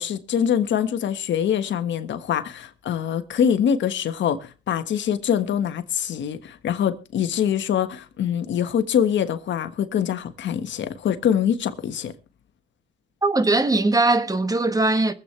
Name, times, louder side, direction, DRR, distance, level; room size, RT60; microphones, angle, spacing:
voice 1, 0.0-12.1, left 8 dB, 65° left, 1.4 m, -24 dB
voice 2, 13.2-15.1, right 2 dB, 20° right, 1.3 m, -20 dB
23.5 x 8.3 x 3.3 m
cardioid pair, 90°, 20 cm